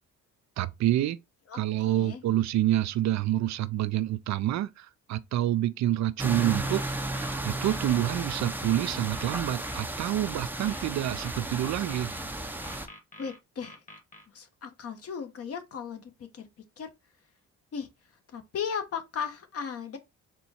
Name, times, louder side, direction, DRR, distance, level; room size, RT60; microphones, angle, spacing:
voice 1, 0.6-1.2 1.5-6.8 7.4-12.1, right 13 dB, 65° right, 0.4 m, -27 dB
voice 2, 1.9-2.2 13.2-13.8 14.3-16.5 16.8-16.9 17.7-17.9 18.3-20.0, left 7 dB, 50° left, 1.0 m, -36 dB
sound 1, 6.2-12.9, right 1 dB, 5° right, 0.6 m, -34 dB
sound 2, 6.6-8.3 8.6-9.9 10.6-12.3 12.6-14.2, left 2 dB, 25° left, 1.2 m, -48 dB
4.3 x 2.3 x 4.2 m
cardioid pair, 90°, 30 cm